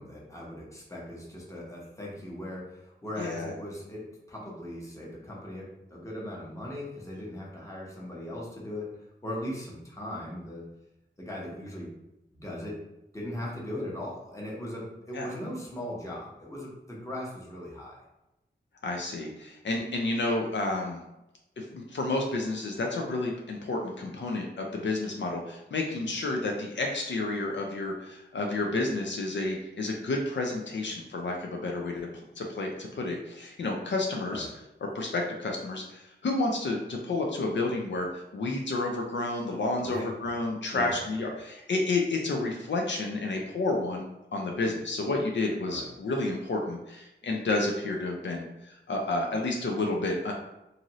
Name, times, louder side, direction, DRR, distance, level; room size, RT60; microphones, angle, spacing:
voice 1, 0.0-8.9 9.2-10.7 11.2-11.9 12.3-12.8 13.1-18.0 34.3-34.5 39.8-40.1 40.7-40.9 45.7-45.9, left 1 dB, 15° left, -4 dB, 0.9 m, -39 dB
voice 2, 3.2-3.5 15.1-15.3 18.8-21.0 21.6-32.1 32.4-34.5 34.9-50.3, left 2 dB, 70° left, 1 dB, 0.4 m, -30 dB
2.6 x 2.5 x 3.0 m, 0.92 s
wide cardioid pair, 80°, 20 cm